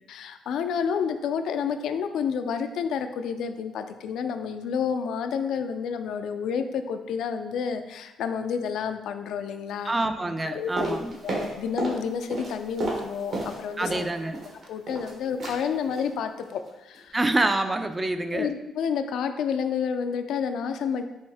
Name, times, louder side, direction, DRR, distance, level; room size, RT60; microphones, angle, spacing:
voice 1, 0.1-9.9 10.5-11.0 11.2-14.1 14.7-17.2 18.3-21.0, left 6 dB, 80° left, 8 dB, 0.3 m, -29 dB
voice 2, 9.8-11.2 13.8-14.4 17.1-18.5, right 2 dB, 20° right, 9 dB, 0.3 m, -26 dB
sound 1, 10.8-12.0 12.3-14.1 14.3-15.1 15.4-15.6 15.9-16.1 16.4-16.7 16.9-17.0, right 2 dB, 60° right, 1.3 m, -32 dB
5.3 x 2.6 x 3.4 m, 1.0 s
cardioid pair, 90°, 0 cm